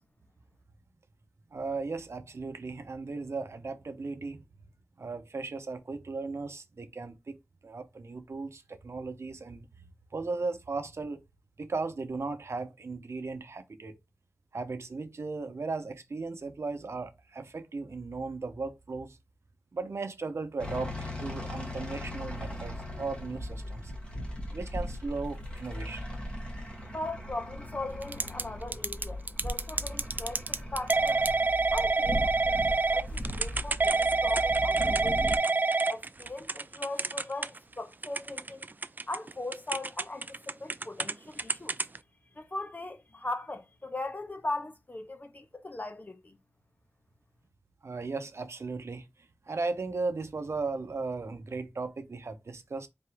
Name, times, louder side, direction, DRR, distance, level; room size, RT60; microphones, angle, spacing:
voice 1, 1.5-4.4 5.0-7.4 7.6-9.7 10.1-11.2 11.6-14.0 14.5-19.2 19.7-23.9 24.5-26.0 47.8-49.0 49.5-52.9, right 3 dB, 75° right, 0.7 m, -36 dB
sound 1, 20.6-35.4, left 1 dB, 25° left, 1.4 m, -38 dB
voice 2, 26.9-31.2 31.7-35.4 35.9-38.6 39.1-41.8 42.3-46.4, left 2 dB, 40° left, 0.9 m, -39 dB
Typing / Telephone, 28.0-28.4 28.7-37.7 38.0-41.1 41.4-42.0, right 3 dB, 40° right, 0.4 m, -27 dB
4.3 x 2.9 x 3.4 m
wide cardioid pair, 60°, 5 cm